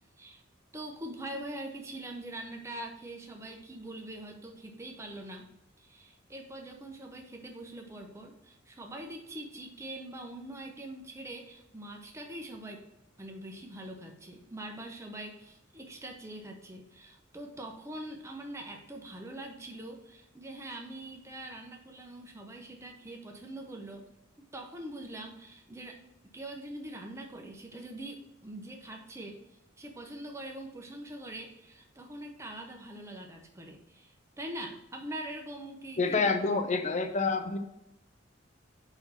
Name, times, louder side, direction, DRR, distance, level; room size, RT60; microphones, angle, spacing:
voice 1, 0.7-5.5 5.8-12.9 13.2-24.1 24.5-26.0 26.3-29.4 29.8-36.3, right 1 dB, 15° right, 2 dB, 0.7 m, -43 dB
voice 2, 36.0-37.6, left 4 dB, 35° left, 7 dB, 0.6 m, -28 dB
4.5 x 3.8 x 5.6 m, 0.85 s
head